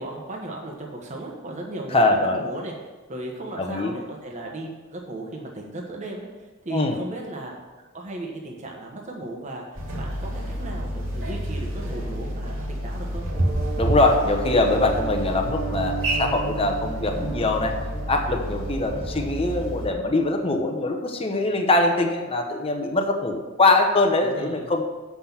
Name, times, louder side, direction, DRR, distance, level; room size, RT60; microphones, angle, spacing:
voice 1, 0.0-2.7 3.1-6.3 6.6-7.5 7.9-13.3 24.2-24.7, right 1 dB, 35° right, -1 dB, 1.3 m, -35 dB
voice 2, 1.9-2.4 3.6-3.9 6.7-6.9 13.8-17.7 18.1-24.8, left 2 dB, 25° left, 3 dB, 0.9 m, -22 dB
sound 1, 9.7-19.9, right 1 dB, 75° right, 2.6 m, -29 dB
7.8 x 5.9 x 7.2 m, 1.3 s
head